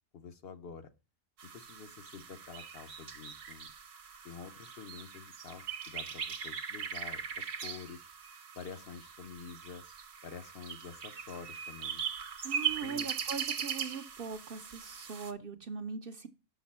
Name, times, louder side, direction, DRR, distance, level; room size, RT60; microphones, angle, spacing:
voice 1, 0.1-0.9 1.5-3.7 4.2-8.1 8.5-9.8 10.2-12.0 12.8-13.1, left 6 dB, 60° left, 9 dB, 0.8 m, -48 dB
sound 1, 1.4-15.3, right 7 dB, 70° right, 1.1 m, -40 dB
voice 2, 12.4-16.3, right 5 dB, 55° right, 7 dB, 0.7 m, -41 dB
6.3 x 5.9 x 4.2 m, 0.30 s
omnidirectional pair, 1.3 m